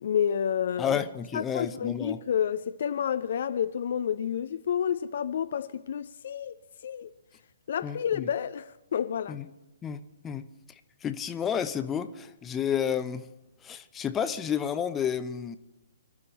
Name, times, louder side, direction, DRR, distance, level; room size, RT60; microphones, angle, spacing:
voice 1, 0.0-1.0 1.3-6.6 6.8-7.1 7.7-9.4, left 8 dB, 50° left, 0.6 m, -29 dB
voice 2, 0.8-2.2 7.8-8.3 9.3-9.5 9.8-10.5 11.0-13.3 13.6-15.6, left 8 dB, 15° left, 0.8 m, -31 dB
26.0 x 12.5 x 4.2 m
figure-of-eight pair, 130°, 0 cm